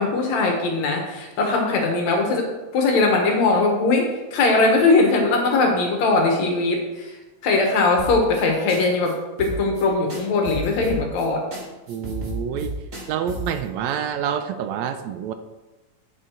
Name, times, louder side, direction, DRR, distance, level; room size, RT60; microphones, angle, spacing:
voice 1, 0.0-7.2 7.4-11.4, left 3 dB, 70° left, 2 dB, 2.7 m, -20 dB
sound 1, 8.0-8.4 8.7-8.8 9.0-9.1 9.4-9.8 10.1-11.2 11.5-11.6 11.9-13.6, equal, 30° right, 2.3 m, -33 dB
voice 2, 11.9-12.8 13.1-15.3, right 8 dB, 80° right, 10 dB, 1.8 m, -27 dB
8.7 x 6.5 x 4.6 m, 1.1 s
omnidirectional pair, 3.3 m